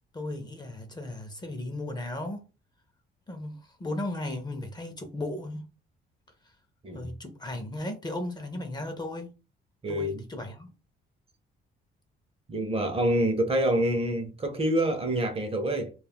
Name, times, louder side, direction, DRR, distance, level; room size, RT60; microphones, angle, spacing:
voice 1, 0.1-2.5 3.3-5.6 6.9-9.3 9.9-10.7, left 1 dB, 20° left, 0.6 m, -36 dB
voice 2, 9.8-10.2 12.5-15.9, right 1 dB, 30° right, 0.6 m, -26 dB
2.3 x 2.0 x 3.4 m
cardioid pair, 90°, 20 cm